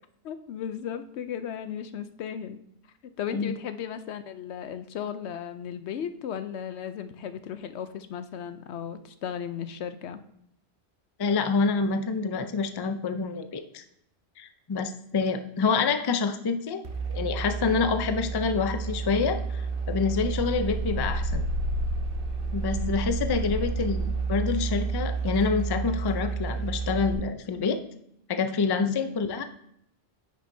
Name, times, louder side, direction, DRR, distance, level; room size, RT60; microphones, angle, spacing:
voice 1, 0.2-2.6 3.0-10.2 22.7-23.0 28.8-28.9, left 8 dB, 80° left, 11 dB, 0.9 m, -35 dB
voice 2, 11.2-13.8 14.4-16.8 17.1-19.6 19.9-21.4 22.5-27.8 28.3-29.4, left 5 dB, 35° left, 8 dB, 0.4 m, -27 dB
sound 1, 16.8-27.1, right 3 dB, 60° right, 1.2 m, -30 dB
9.5 x 6.4 x 2.6 m, 0.73 s
omnidirectional pair, 1.1 m